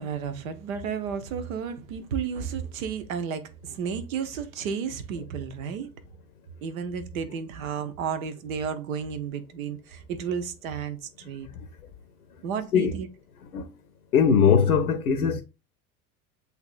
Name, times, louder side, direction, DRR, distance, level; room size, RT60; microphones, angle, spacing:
voice 1, 0.0-5.9 6.6-11.5 12.4-13.1, right 7 dB, 65° right, 0.9 m, -32 dB
voice 2, 14.1-15.4, left 6 dB, 80° left, 0.6 m, -20 dB
8.0 x 2.7 x 2.4 m
figure-of-eight pair, 70°, 44 cm